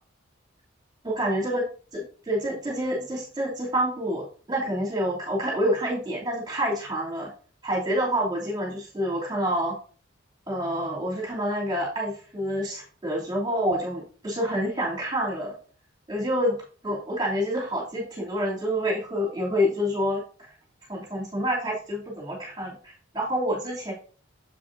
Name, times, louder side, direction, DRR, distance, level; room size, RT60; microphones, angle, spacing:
voice 1, 1.0-1.6 1.9-7.3 7.6-9.7 10.5-15.5 16.1-16.6 16.8-20.2 20.9-23.9, equal, 20° right, -5 dB, 2.9 m, -27 dB
7.6 x 7.6 x 2.7 m, 0.40 s
head